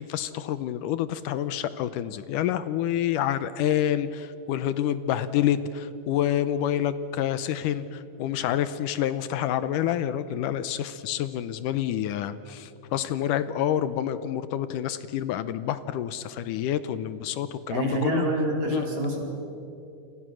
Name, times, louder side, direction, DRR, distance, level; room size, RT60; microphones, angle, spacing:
voice 1, 0.0-18.3 18.7-18.9, left 10 dB, 80° left, 13 dB, 2.2 m, -28 dB
voice 2, 17.7-19.2, right 2 dB, 55° right, 0 dB, 5.7 m, -26 dB
29.5 x 26.5 x 6.3 m, 2.7 s
omnidirectional pair, 3.9 m